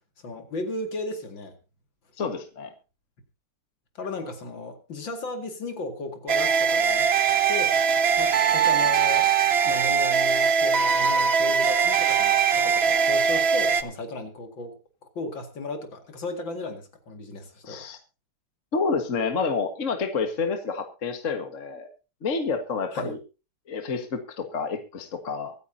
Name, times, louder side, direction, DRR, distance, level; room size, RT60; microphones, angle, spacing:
voice 1, 0.2-1.6 3.9-7.8 8.2-9.3 9.6-14.8 15.2-17.9 22.9-23.2, left 2 dB, 60° left, 5 dB, 2.9 m, -35 dB
voice 2, 2.2-2.7 17.6-18.0 18.7-21.9 22.2-23.2 23.7-25.5, left 4 dB, 40° left, 6 dB, 1.8 m, -29 dB
sound 1, 6.3-13.8, right 6 dB, 60° right, 0.6 m, -21 dB
24.5 x 9.4 x 2.8 m, 0.31 s
omnidirectional pair, 2.4 m